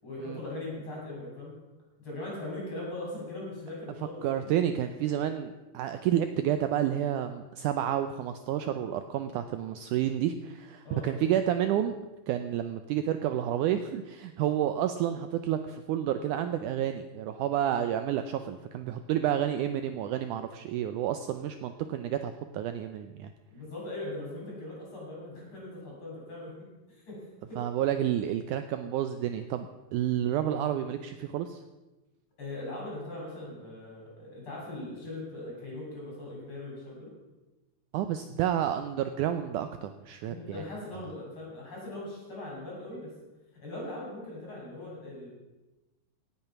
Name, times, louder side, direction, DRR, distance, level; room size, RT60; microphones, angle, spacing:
voice 1, 0.0-1.5 2.0-4.4 10.8-11.3 23.5-26.7 27.1-27.6 32.4-37.1 40.3-43.1 43.6-45.3, left 2 dB, 35° left, -4 dB, 7.3 m, -40 dB
voice 2, 4.2-11.9 12.3-23.3 27.6-31.6 37.9-40.6, right 10 dB, 85° right, 9 dB, 1.8 m, -30 dB
17.5 x 8.8 x 5.9 m, 1.1 s
omnidirectional pair, 4.3 m